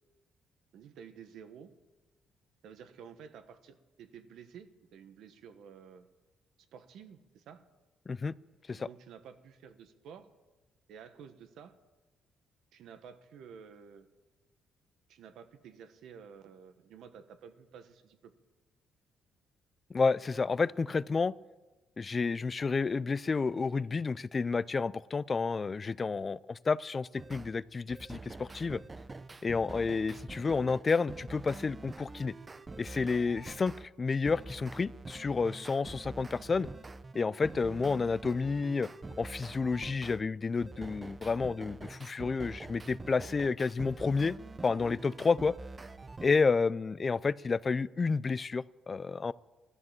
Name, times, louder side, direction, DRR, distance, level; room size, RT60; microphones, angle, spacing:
voice 1, 0.7-1.7 2.6-6.1 6.7-7.6 8.7-10.3 10.9-11.7 12.7-14.1 15.1-18.3, right 7 dB, 80° right, 9 dB, 1.3 m, -51 dB
voice 2, 19.9-21.3 22.0-28.8 29.4-32.3 32.8-36.7 37.1-38.9 39.2-44.4 44.6-45.5 46.2-49.3, left 4 dB, 35° left, 20 dB, 0.4 m, -30 dB
sound 1, 27.2-27.5 27.9-33.9 34.2-40.2 40.6-46.3, right 3 dB, 25° right, 0.7 m, -46 dB
14.5 x 12.5 x 7.4 m, 1.2 s
cardioid pair, 90°, 0 cm